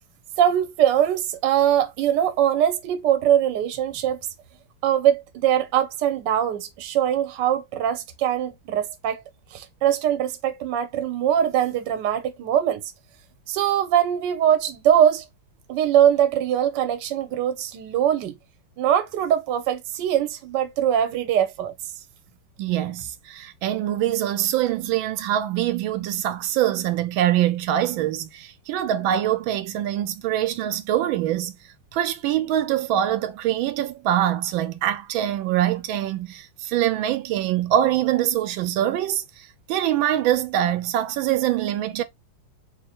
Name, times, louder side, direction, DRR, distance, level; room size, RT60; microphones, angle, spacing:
voice 1, 0.4-4.2 4.8-9.2 9.5-12.8 13.5-15.2 15.7-18.3 18.8-21.7, right 10 dB, 70° right, 1.3 m, -22 dB
voice 2, 22.6-31.5 31.9-42.0, right 12 dB, 85° right, 1.4 m, -24 dB
3.1 x 2.9 x 4.1 m
omnidirectional pair, 2.1 m